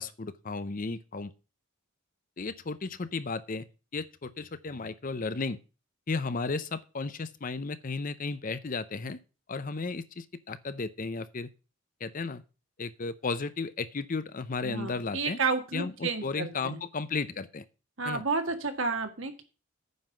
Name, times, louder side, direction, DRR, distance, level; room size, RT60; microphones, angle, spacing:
voice 1, 0.0-1.3 2.4-3.7 3.9-5.6 6.1-9.2 9.5-11.5 12.0-12.4 12.8-15.4 15.7-17.6 18.0-18.2, left 4 dB, 40° left, 15 dB, 0.6 m, -34 dB
voice 2, 14.6-16.8 18.0-19.4, right 4 dB, 65° right, 6 dB, 1.8 m, -31 dB
9.4 x 5.7 x 7.7 m, 0.33 s
head